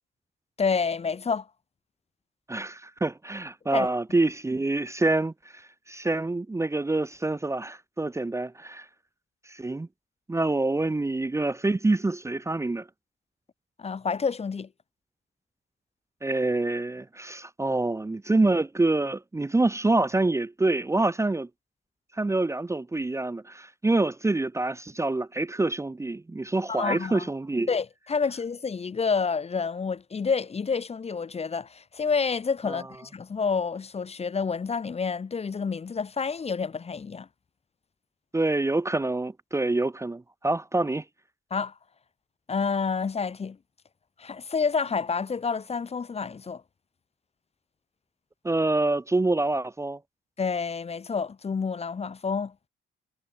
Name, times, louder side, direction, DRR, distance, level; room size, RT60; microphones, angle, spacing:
voice 1, 0.6-1.5 3.7-3.9 13.8-14.7 26.7-27.3 27.7-37.3 41.5-41.7 42.5-43.6 44.2-46.6 50.4-52.5, left 5 dB, 30° left, 1.0 m, -29 dB
voice 2, 2.5-8.9 9.5-9.9 10.3-12.9 16.2-21.5 22.1-27.7 32.7-32.8 38.3-41.0 48.4-50.0, right 2 dB, 15° right, 0.8 m, -26 dB
cardioid pair, 90°, 20 cm